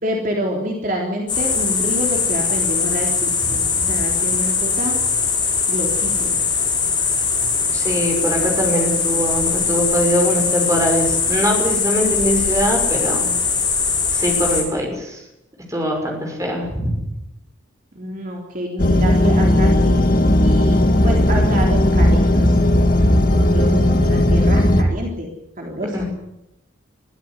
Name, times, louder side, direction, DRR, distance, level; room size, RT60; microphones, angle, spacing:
voice 1, 0.0-5.0 5.7-6.4 17.9-20.0 20.4-22.6 23.3-25.3 25.6-26.0, equal, 40° right, 0 dB, 3.7 m, -27 dB
sound 1, 1.3-14.6, left 5 dB, 20° left, 7.1 m, -21 dB
voice 2, 7.7-13.4 14.1-15.2 15.7-16.9 25.9-26.1, equal, 15° right, 1 dB, 6.4 m, -22 dB
sound 2, 18.8-24.8, left 1 dB, 45° left, 2.1 m, -15 dB
22.5 x 15.0 x 9.8 m, 0.88 s
head